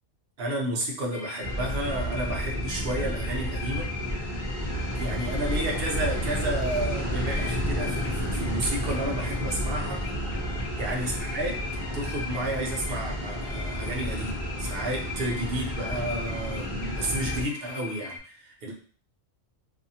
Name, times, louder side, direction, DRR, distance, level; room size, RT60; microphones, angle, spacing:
voice 1, 0.4-3.9 5.0-10.0 10.8-11.6 11.9-18.7, right 1 dB, 55° right, -1 dB, 0.8 m, -31 dB
sound 1, 1.1-18.2, left 4 dB, 65° left, 0.8 m, -40 dB
sound 2, 1.4-17.4, equal, 30° right, 0.5 m, -31 dB
2.7 x 2.5 x 2.7 m, 0.43 s
omnidirectional pair, 1.3 m